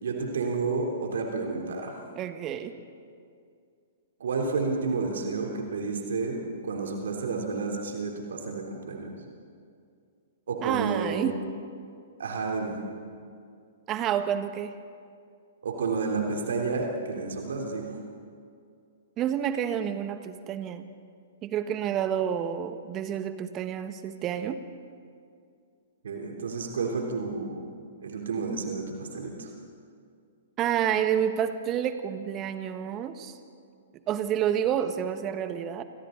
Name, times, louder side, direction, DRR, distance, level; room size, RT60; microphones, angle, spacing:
voice 1, 0.0-1.9 4.2-9.1 10.5-11.4 12.2-12.8 15.6-17.9 26.0-27.6 28.0-29.5, right 4 dB, 65° right, 1 dB, 3.3 m, -30 dB
voice 2, 2.1-2.7 10.6-11.4 13.9-14.7 19.2-20.9 21.4-24.6 30.6-33.4 34.1-35.8, right 9 dB, 30° right, 9 dB, 1.4 m, -29 dB
29.0 x 25.5 x 4.0 m, 2.3 s
figure-of-eight pair, 115°, 0 cm